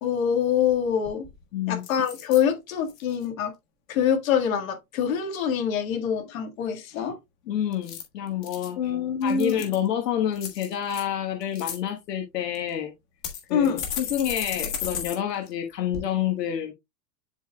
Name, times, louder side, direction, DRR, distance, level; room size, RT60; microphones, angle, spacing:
voice 1, 0.0-1.3 1.7-3.5 3.9-7.2 8.8-9.6 13.5-13.8, left 8 dB, 55° left, 1.8 m, -25 dB
sound 1, 0.7-0.8 1.0-1.4 1.8-2.4 2.9-3.2 7.7-8.7 9.2-9.9 10.4-11.0 11.4-11.8 12.5-12.6 13.2-15.2 15.5-15.6 15.9-16.0, left 8 dB, 30° left, 1.5 m, -34 dB
voice 2, 1.5-1.8 7.5-8.9 9.2-12.9 13.5-16.7, left 10 dB, 75° left, 1.4 m, -28 dB
11.5 x 3.8 x 2.2 m
supercardioid pair, 180°, 50 cm